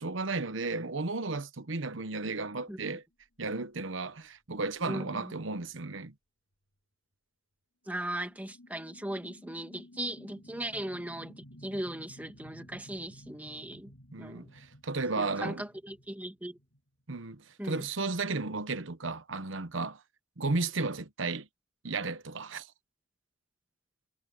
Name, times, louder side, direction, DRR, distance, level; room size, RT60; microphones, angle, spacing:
voice 1, 0.0-3.0 3.4-6.1 14.1-15.6 17.1-20.0 20.4-21.5 21.8-22.7, right 3 dB, 70° right, 1.1 m, -34 dB
voice 2, 4.9-5.4 7.9-13.9 14.2-14.5 15.2-16.6 17.6-17.8, right 1 dB, 10° right, 2.3 m, -38 dB
sound 1, 8.2-16.8, left 1 dB, 70° left, 6.8 m, -54 dB
head